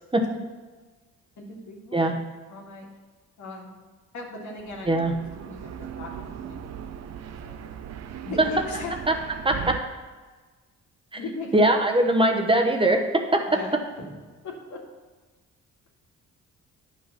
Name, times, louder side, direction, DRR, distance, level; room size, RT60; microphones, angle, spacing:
voice 1, 1.4-2.0 2.5-2.9 3.4-3.7 4.1-5.0 5.3-7.7 8.2-8.9 11.1-11.9 13.5-14.2 14.4-14.8, left 3 dB, 70° left, -1 dB, 2.3 m, -39 dB
sound 1, 4.6-9.8, right 9 dB, 60° right, 0.7 m, -38 dB
voice 2, 9.4-9.8 11.5-13.4, right 1 dB, 15° right, 3 dB, 1.0 m, -21 dB
9.5 x 5.6 x 5.9 m, 1.4 s
cardioid pair, 90°, 30 cm